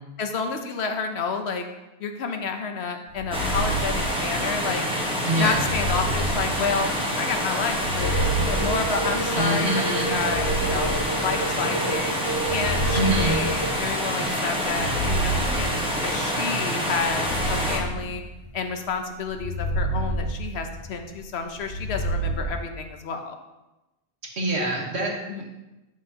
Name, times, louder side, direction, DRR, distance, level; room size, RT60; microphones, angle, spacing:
voice 1, 0.2-1.6 2.0-4.8 5.4-8.1 8.5-12.1 12.5-18.2 18.5-23.4 25.3-25.4, left 5 dB, 75° left, 5 dB, 1.0 m, -30 dB
sound 1, 3.1-4.7 5.5-7.2 7.7-9.5 10.1-11.6 12.3-14.1 14.6-16.3 17.0-18.7 19.3-21.1 21.6-22.5, right 1 dB, 40° left, 1.9 m, -29 dB
sound 2, 3.3-17.8, equal, 5° right, 1.1 m, -27 dB
voice 2, 5.3-5.7 9.3-10.1 12.9-13.4 24.4-25.1, right 1 dB, 80° right, -1 dB, 1.7 m, -25 dB
sound 3, 8.0-13.8, right 3 dB, 25° right, 0.6 m, -31 dB
9.1 x 6.3 x 2.9 m, 1.0 s
omnidirectional pair, 1.1 m